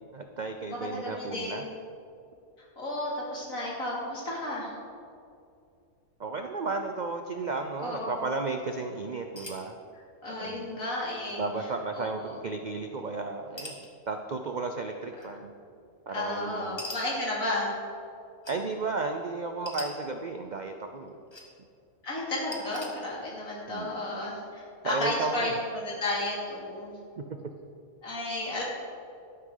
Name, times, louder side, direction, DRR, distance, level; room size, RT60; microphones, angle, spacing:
voice 1, 0.1-1.6 6.2-9.8 10.4-10.7 11.4-15.5 16.1-16.8 18.5-21.2 23.7-24.0 24.8-25.6 27.2-27.3, right 3 dB, 60° right, 5 dB, 0.4 m, -34 dB
voice 2, 0.7-1.7 2.8-4.7 7.8-8.2 10.2-11.4 11.9-12.1 16.1-17.7 22.0-27.0 28.0-28.6, left 1 dB, 65° left, -5 dB, 3.1 m, -33 dB
sound 1, 9.4-9.7 10.7-10.8 11.1-11.5 13.6-13.9 15.2-15.3 16.8-17.0 18.4-18.6 19.7-19.9 21.0-21.5 22.5-22.9, left 1 dB, 20° left, 1.4 m, -41 dB
12.5 x 11.0 x 3.9 m, 2.5 s
omnidirectional pair, 1.5 m